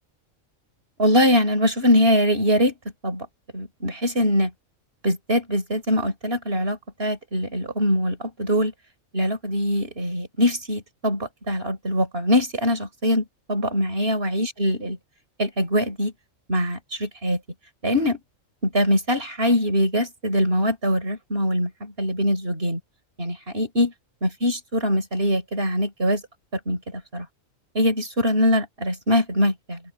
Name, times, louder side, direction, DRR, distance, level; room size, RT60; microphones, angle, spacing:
voice 1, 1.0-2.7 3.0-3.3 3.5-4.5 5.0-8.7 9.1-15.0 15.4-16.1 16.5-17.4 17.8-18.2 18.6-22.8 23.2-23.9 24.2-26.2 26.7-27.3 27.7-29.8, equal, 45° right, 4.7 m, -23 dB
open air
omnidirectional pair, 1.4 m